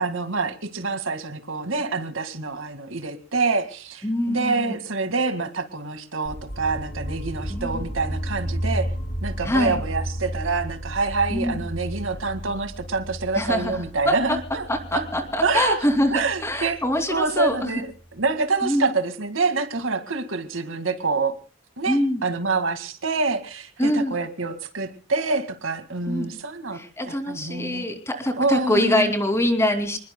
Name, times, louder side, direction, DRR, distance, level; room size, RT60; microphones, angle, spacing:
voice 1, 0.0-8.9 9.2-14.7 14.9-15.0 15.4-15.8 16.1-16.8 17.1-17.9 18.1-21.3 21.8-27.9 28.4-29.1, right 3 dB, 85° right, 9 dB, 2.0 m, -26 dB
voice 2, 4.0-4.8 7.5-7.8 9.4-9.8 11.3-11.6 13.3-13.8 14.0-14.4 14.7-17.7 18.6-18.9 21.9-22.2 23.8-24.2 26.1-26.3 26.7-30.0, left 1 dB, 15° left, 6 dB, 2.7 m, -24 dB
sound 1, 6.2-18.2, equal, 55° left, 6.9 m, -33 dB
28.5 x 20.5 x 2.3 m, 0.36 s
head